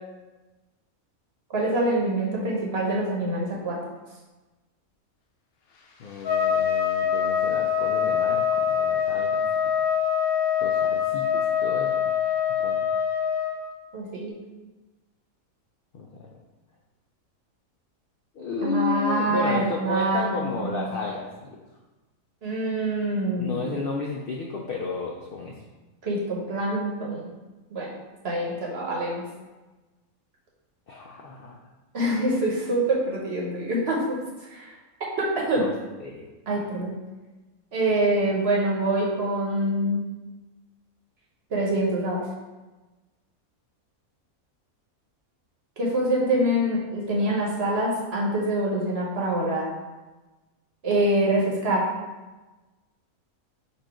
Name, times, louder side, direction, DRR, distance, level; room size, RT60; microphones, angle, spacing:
voice 1, 1.5-3.8 13.9-14.4 18.6-20.4 20.6-20.9 22.4-23.6 26.0-27.3 27.7-27.9 28.2-29.2 31.9-34.2 34.5-34.7 35.2-35.6 36.5-36.9 37.7-40.0 41.5-42.2 45.8-49.7 50.8-51.9, right 1 dB, 50° right, -3 dB, 1.0 m, -25 dB
voice 2, 6.0-9.4 10.6-12.1 12.4-12.9 15.9-16.3 18.3-21.6 23.4-25.6 30.9-31.6 35.6-35.7 36.0-36.2, left 3 dB, 70° left, -1 dB, 0.5 m, -32 dB
Trumpet, 6.2-13.6, left 8 dB, 90° left, 1.1 m, -24 dB
4.2 x 2.5 x 4.7 m, 1.2 s
omnidirectional pair, 1.5 m